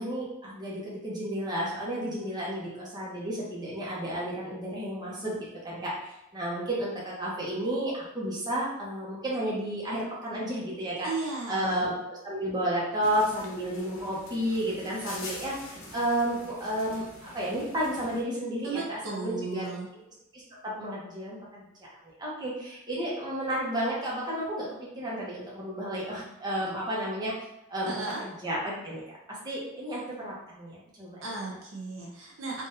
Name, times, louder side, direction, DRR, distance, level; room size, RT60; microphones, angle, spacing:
voice 1, 0.0-11.1 11.5-19.7 20.3-21.6 22.0-24.7 24.9-27.3 27.7-27.9 28.2-29.0 29.4-31.2, right 1 dB, 20° right, -6 dB, 1.0 m, -32 dB
voice 2, 11.0-11.9 18.6-19.9 26.6-26.7 27.8-28.2 31.2-32.7, right 3 dB, 70° right, -2 dB, 0.6 m, -35 dB
sound 1, 13.0-18.2, left 2 dB, 70° left, 0.8 m, -45 dB
3.9 x 2.5 x 2.7 m, 0.88 s
head